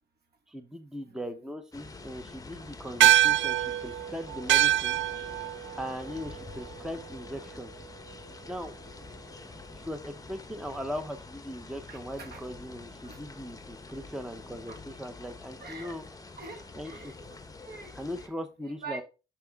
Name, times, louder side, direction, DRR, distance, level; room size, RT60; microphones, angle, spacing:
voice 1, 0.5-5.0 5.8-7.7 8.5-8.8 9.7-16.1 16.7-17.1 17.9-19.0, equal, 5° right, 8 dB, 0.8 m, -39 dB
sound 1, 1.7-18.3, left 3 dB, 20° left, 1.0 m, -46 dB
sound 2, 3.0-7.7, right 13 dB, 70° right, 0.4 m, -26 dB
voice 2, 11.9-12.4 13.0-13.2 14.7-14.8 15.6-15.9 16.4-17.9 18.8-19.0, right 4 dB, 55° right, 4 dB, 2.3 m, -44 dB
6.9 x 5.9 x 3.5 m, 0.30 s
cardioid pair, 90°, 20 cm